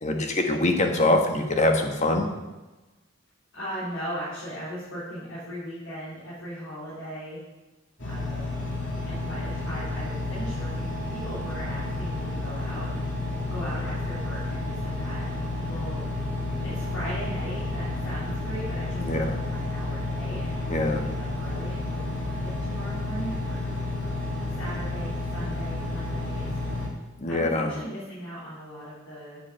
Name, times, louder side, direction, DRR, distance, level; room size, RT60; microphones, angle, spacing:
voice 1, 0.0-2.3 19.0-19.3 20.7-21.0 27.2-27.7, left 2 dB, 35° left, 4 dB, 1.4 m, -23 dB
voice 2, 3.5-7.4 8.0-8.7 9.0-13.2 13.5-16.0 16.6-23.6 24.6-26.8 27.3-29.4, equal, 75° left, -10 dB, 3.9 m, -38 dB
Engine, 8.0-26.9, left 2 dB, 60° left, 2.9 m, -31 dB
8.4 x 6.5 x 7.7 m, 1.1 s
head